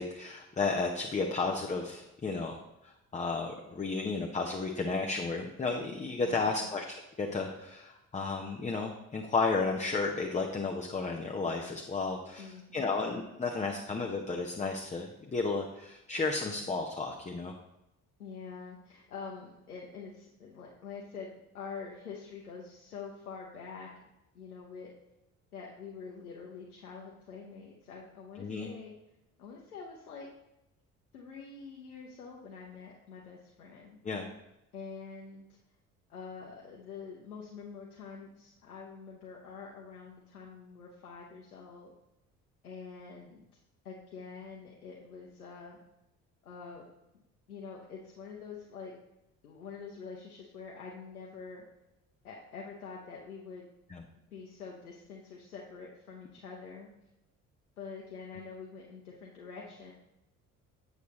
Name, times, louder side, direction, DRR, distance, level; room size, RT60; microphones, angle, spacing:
voice 1, 0.0-2.6 2.8-6.9 7.2-17.5 28.4-28.7 34.0-34.3 53.9-54.0, left 4 dB, 15° left, 2 dB, 0.8 m, -33 dB
voice 2, 6.3-6.6 12.4-12.9 18.2-24.1 24.3-24.9 25.5-28.9 29.4-30.3 31.1-34.0 34.7-35.5 36.1-41.9 42.6-43.4 43.8-45.8 46.4-46.9 47.1-47.2 47.5-49.0 49.4-51.6 52.2-53.7 54.1-56.9 57.8-59.9, left 5 dB, 80° left, -3 dB, 0.9 m, -46 dB
8.0 x 6.5 x 3.1 m, 0.90 s
figure-of-eight pair, 50°, 43 cm